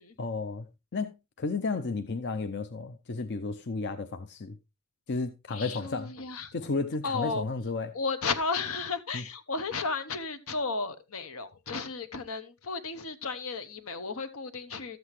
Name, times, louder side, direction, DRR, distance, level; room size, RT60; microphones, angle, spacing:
voice 1, 0.2-0.7 0.9-4.5 5.1-6.1 6.5-7.9 9.1-9.2, left 3 dB, 50° left, 0.6 m, -33 dB
voice 2, 5.5-6.5 7.0-7.5 7.9-15.0, left 4 dB, 75° left, 1.1 m, -33 dB
13.0 x 7.8 x 3.2 m
head